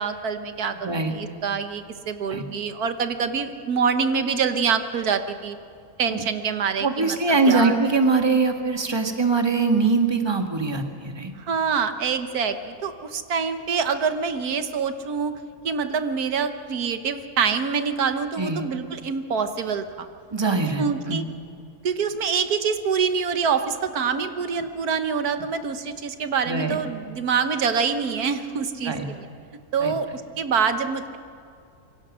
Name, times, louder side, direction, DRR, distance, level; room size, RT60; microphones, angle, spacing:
voice 1, 0.0-5.5 6.0-7.2 7.5-7.7 11.4-15.3 15.6-20.1 20.8-21.2 21.8-28.9 29.7-31.2, right 6 dB, 85° right, 9 dB, 1.6 m, -25 dB
voice 2, 6.8-11.3 18.4-18.7 20.3-21.3 26.4-26.8 28.8-29.1 29.8-29.9, right 3 dB, 15° right, 5 dB, 1.7 m, -22 dB
26.5 x 23.0 x 6.3 m, 2.4 s
omnidirectional pair, 1.6 m